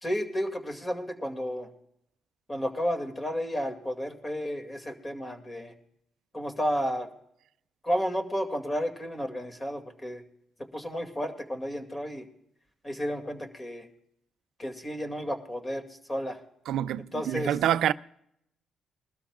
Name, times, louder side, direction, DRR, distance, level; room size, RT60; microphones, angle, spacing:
voice 1, 0.0-1.7 2.5-5.7 6.3-7.1 7.8-10.2 10.6-12.3 12.8-13.9 14.6-16.4 17.1-17.5, equal, 20° left, 2.3 m, -32 dB
voice 2, 16.7-17.9, right 11 dB, 80° right, 0.4 m, -26 dB
22.0 x 13.0 x 2.4 m
cardioid pair, 90°, 0 cm